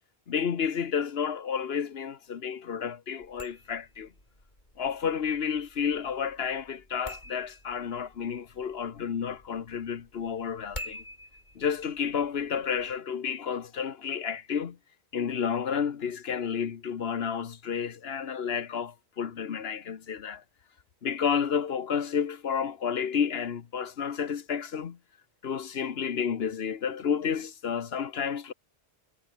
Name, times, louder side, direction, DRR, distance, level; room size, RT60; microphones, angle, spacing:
voice 1, 0.3-4.1 4.8-11.0 11.5-14.8 15.1-20.4 21.0-25.0 25.4-28.5, left 7 dB, 65° left, 1.2 m, -31 dB
sound 1, 3.2-13.0, left 1 dB, 45° left, 7.6 m, -48 dB
omnidirectional pair, 1.1 m